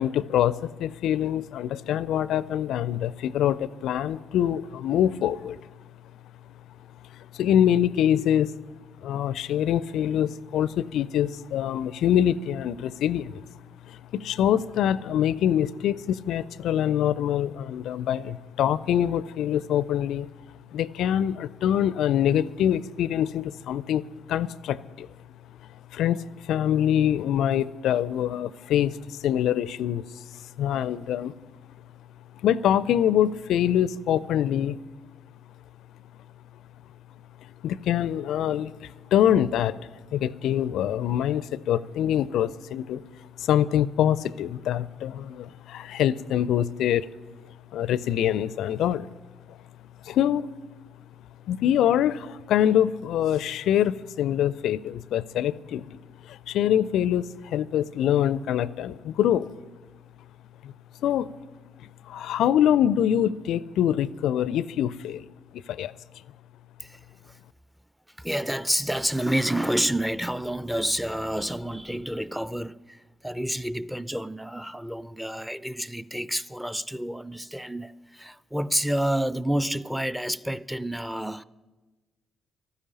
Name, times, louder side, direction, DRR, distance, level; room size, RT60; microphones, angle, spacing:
voice 1, 0.0-5.6 7.1-8.5 9.0-13.4 13.9-20.3 20.7-25.1 25.9-31.3 32.4-34.8 37.6-43.0 43.4-47.1 47.7-49.1 49.5-49.6 50.0-50.5 51.5-56.0 56.2-59.5 60.6-60.7 61.0-61.3 61.8-65.2 65.5-65.9, left 10 dB, 65° left, 0.4 m, -25 dB
voice 2, 68.2-81.4, equal, 5° right, 0.6 m, -29 dB
12.0 x 9.9 x 10.0 m
figure-of-eight pair, 40°, 0 cm